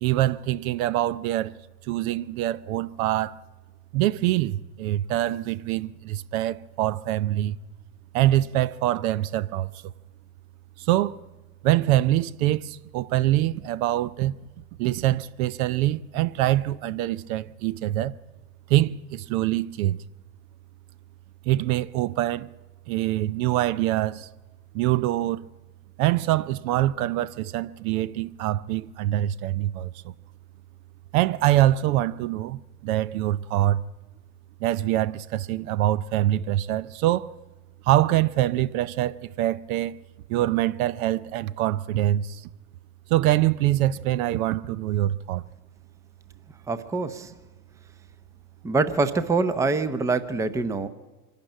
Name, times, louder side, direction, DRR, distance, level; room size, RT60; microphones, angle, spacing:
voice 1, 0.0-1.6 1.9-3.4 3.9-7.6 8.1-9.7 10.8-11.2 11.6-14.4 14.8-18.2 18.7-20.0 21.5-22.5 22.9-24.3 24.7-25.5 26.0-30.1 31.1-33.8 34.6-37.3 37.8-40.0 40.3-42.5 43.1-45.4, right 14 dB, 60° right, 0.6 m, -24 dB
voice 2, 46.7-47.3 48.6-50.9, right 3 dB, 5° right, 0.6 m, -25 dB
24.5 x 12.0 x 9.0 m
supercardioid pair, 130°, 48 cm